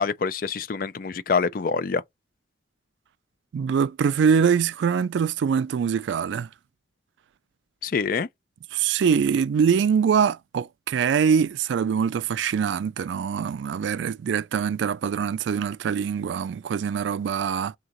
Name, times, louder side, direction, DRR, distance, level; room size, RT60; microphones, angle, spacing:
voice 1, 0.0-2.0 7.8-8.3, left 5 dB, 50° left, 0.4 m, -25 dB
voice 2, 3.5-6.5 8.7-17.7, right 7 dB, 75° right, 0.3 m, -23 dB
3.6 x 2.8 x 2.9 m
head